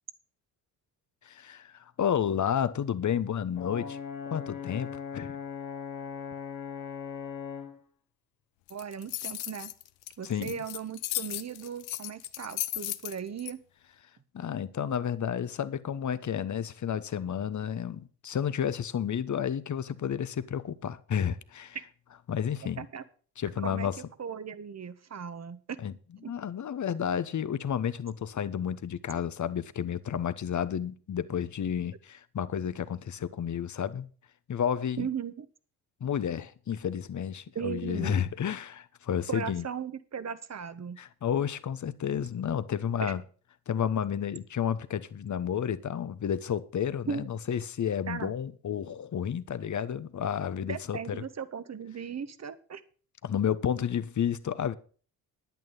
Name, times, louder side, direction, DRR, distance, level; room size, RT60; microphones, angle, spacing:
voice 1, 1.2-4.0 4.3-5.4 10.2-10.6 14.3-21.8 22.3-22.8 23.4-24.0 25.8-25.9 26.3-34.1 34.5-35.1 36.0-39.6 41.0-43.2 43.7-51.2 53.2-54.7, left 8 dB, 35° left, 1.1 m, -31 dB
Brass instrument, 3.5-7.8, left 7 dB, 85° left, 2.6 m, -39 dB
sound 1, 8.7-13.5, left 16 dB, 65° left, 0.9 m, -35 dB
voice 2, 8.7-9.7 10.2-13.6 22.8-23.0 23.6-23.9 24.2-25.8 26.2-26.3 35.0-35.5 37.5-38.2 39.3-41.0 43.0-43.1 47.1-47.3 48.1-48.3 50.7-52.8, right 7 dB, 30° right, 1.3 m, -37 dB
10.5 x 9.5 x 5.6 m
hypercardioid pair, 45°, 49 cm